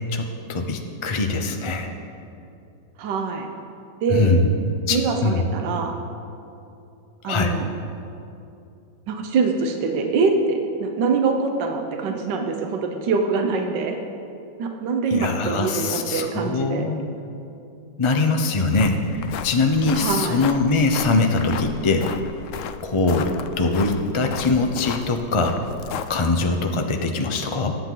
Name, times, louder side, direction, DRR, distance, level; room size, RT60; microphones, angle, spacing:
voice 1, 0.0-1.9 4.1-4.5 4.9-5.4 7.2-7.6 15.1-17.0 18.0-22.1 22.8-25.6 26.1-27.8, left 3 dB, 40° left, 4 dB, 0.4 m, -22 dB
voice 2, 3.0-3.5 4.0-4.4 4.9-6.0 7.2-7.7 9.1-14.0 14.6-16.8 19.9-20.4, right 4 dB, 75° right, 4 dB, 1.6 m, -24 dB
sound 1, 18.5-26.5, left 8 dB, 75° left, 0.7 m, -35 dB
22.0 x 9.1 x 3.9 m, 2.6 s
omnidirectional pair, 2.0 m